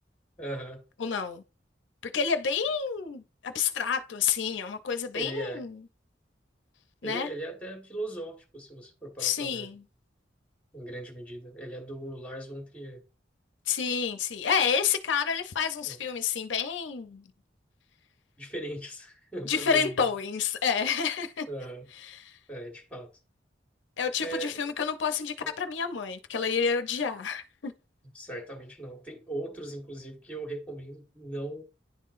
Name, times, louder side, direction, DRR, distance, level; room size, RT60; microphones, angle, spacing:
voice 1, 0.4-0.8 5.1-5.6 7.0-9.7 10.7-13.0 15.8-16.0 18.4-20.0 21.5-21.9 22.5-23.1 24.2-24.6 25.4-25.5 28.1-31.6, right 1 dB, 10° left, 1.4 m, -39 dB
voice 2, 1.0-1.4 2.0-5.8 7.0-7.3 9.2-9.8 13.7-17.3 19.4-21.5 21.9-22.4 24.0-27.7, left 6 dB, 80° left, 0.6 m, -29 dB
10.5 x 3.8 x 2.5 m
head